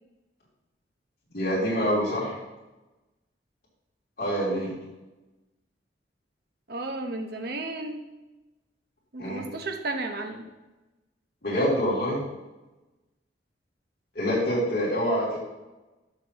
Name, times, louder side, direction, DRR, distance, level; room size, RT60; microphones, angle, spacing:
voice 1, 1.3-2.4 4.2-4.7 9.2-9.4 11.4-12.2 14.1-15.4, equal, 55° left, -7 dB, 3.0 m, -26 dB
voice 2, 6.7-8.0 9.1-10.4, right 2 dB, 60° right, 4 dB, 0.9 m, -33 dB
11.5 x 6.0 x 3.0 m, 1.1 s
head